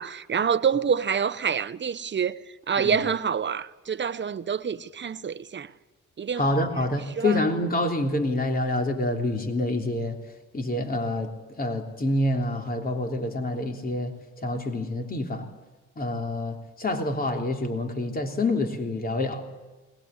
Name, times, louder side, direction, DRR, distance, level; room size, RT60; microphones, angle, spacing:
voice 1, 0.0-2.4 2.7-5.7 6.2-6.5 7.1-7.4, right 7 dB, 40° right, 1.1 m, -27 dB
voice 2, 6.4-10.2 10.5-14.1 14.4-15.5 16.0-19.4, left 1 dB, 30° left, 3.4 m, -27 dB
21.0 x 20.5 x 9.7 m
cardioid pair, 90°, 30 cm